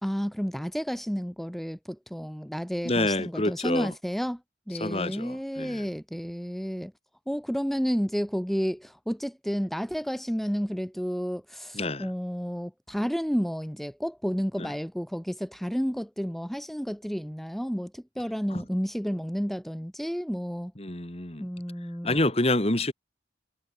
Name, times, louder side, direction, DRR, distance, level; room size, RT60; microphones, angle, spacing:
voice 1, 0.0-4.4 4.7-6.9 7.3-20.7 21.4-22.2, equal, ahead, 1.2 m, -31 dB
voice 2, 2.8-3.9 4.8-5.9 11.7-12.1 14.6-14.7 18.5-18.6 20.8-21.5 22.0-22.9, left 2 dB, 35° left, 2.6 m, -27 dB
head